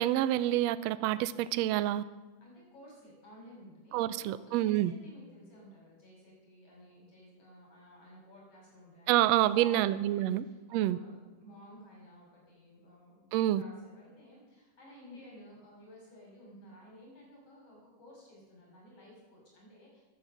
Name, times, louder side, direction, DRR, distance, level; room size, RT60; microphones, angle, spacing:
voice 1, 0.0-2.0 3.9-4.9 9.1-10.4 10.7-11.0 13.3-13.6, right 14 dB, 85° right, 15 dB, 1.5 m, -27 dB
voice 2, 2.4-20.0, equal, 45° left, -3 dB, 7.0 m, -54 dB
16.5 x 10.5 x 7.1 m, 1.2 s
omnidirectional pair, 3.6 m